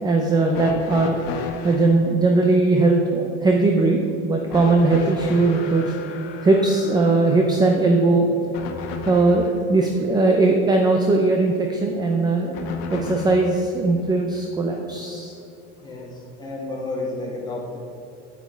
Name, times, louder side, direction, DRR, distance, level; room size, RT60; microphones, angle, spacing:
voice 1, 0.0-1.2 1.6-4.0 4.2-5.9 6.4-8.3 9.1-12.5 12.9-15.3, right 3 dB, 15° right, 2 dB, 0.6 m, -19 dB
sound 1, 0.5-2.0 4.5-9.6 12.5-13.6 14.8-14.9 16.0-16.1, left 4 dB, 80° left, 1.2 m, -33 dB
voice 2, 15.8-17.8, left 2 dB, 15° left, -3 dB, 2.0 m, -31 dB
8.4 x 8.3 x 4.5 m, 2.8 s
cardioid pair, 155°, 30 cm